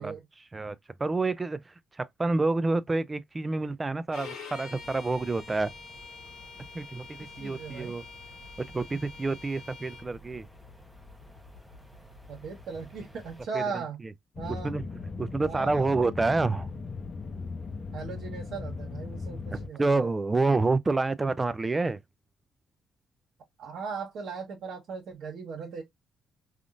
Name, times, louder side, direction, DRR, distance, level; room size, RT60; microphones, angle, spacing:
voice 1, 0.0-5.7 6.7-8.0 8.7-10.5 13.5-14.1 14.5-14.9 15.2-16.7 19.5-22.0, right 3 dB, 25° right, 0.4 m, -28 dB
Bowed string instrument, 4.1-10.1, left 5 dB, 85° left, 1.1 m, -46 dB
sound 1, 4.7-13.5, left 1 dB, 5° right, 0.8 m, -52 dB
voice 2, 7.2-8.0 12.3-14.0 14.4-14.7 15.4-15.9 17.9-20.1 23.6-25.8, right 5 dB, 75° right, 1.2 m, -38 dB
sound 2, 14.4-19.7, left 4 dB, 45° left, 0.6 m, -38 dB
3.5 x 2.4 x 2.5 m
cardioid pair, 90°, 0 cm